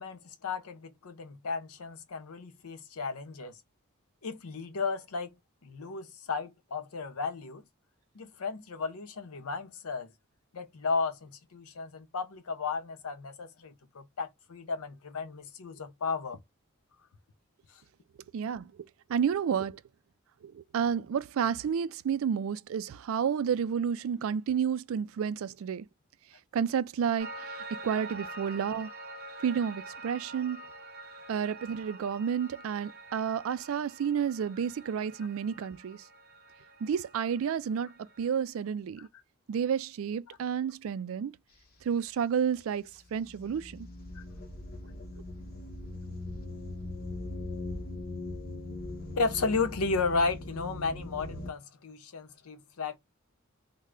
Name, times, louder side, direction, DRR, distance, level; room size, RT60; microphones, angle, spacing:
voice 1, 0.0-3.6 4.2-5.3 5.6-7.6 8.1-10.1 10.5-16.4 40.3-40.4 44.1-44.2 49.2-53.0, left 4 dB, 80° left, 0.7 m, -34 dB
voice 2, 18.3-19.8 20.4-25.9 26.5-28.9 29.4-30.6 31.3-36.0 36.8-39.1 39.5-41.3 41.8-43.9, right 7 dB, 65° right, 0.3 m, -31 dB
Piano, 27.2-38.4, right 2 dB, 45° right, 0.7 m, -46 dB
sound 1, 42.9-51.5, left 2 dB, 45° left, 0.8 m, -40 dB
3.2 x 2.1 x 3.6 m
head